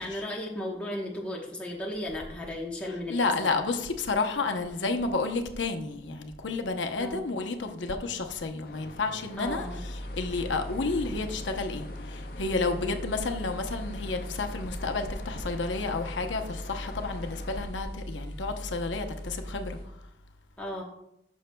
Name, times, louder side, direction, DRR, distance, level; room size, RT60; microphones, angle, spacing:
voice 1, 0.0-3.6 7.0-7.2 9.4-9.8 12.8-12.9 20.6-20.8, left 1 dB, 5° left, 1.1 m, -35 dB
voice 2, 3.1-19.8, left 3 dB, 85° left, 0.8 m, -31 dB
sound 1, 8.6-17.7, left 2 dB, 50° left, 0.6 m, -46 dB
sound 2, 9.4-19.8, equal, 35° left, 2.3 m, -39 dB
13.5 x 6.5 x 2.3 m
head